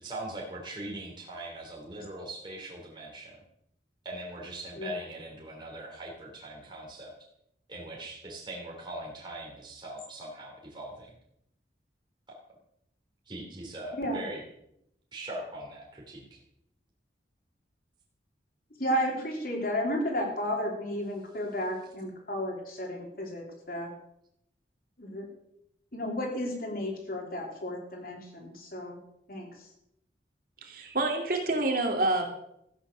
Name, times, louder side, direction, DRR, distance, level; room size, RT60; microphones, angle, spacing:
voice 1, 0.0-3.4 4.0-7.1 7.7-11.1 13.3-14.4 15.1-16.4, right 1 dB, 25° right, -2 dB, 3.1 m, -41 dB
voice 2, 13.9-14.2 18.8-23.9 25.0-25.3 25.9-29.0 29.3-29.5, equal, 50° left, 1 dB, 3.8 m, -33 dB
voice 3, 30.6-32.3, right 2 dB, 50° right, 2 dB, 2.8 m, -27 dB
14.5 x 9.9 x 6.4 m, 0.78 s
head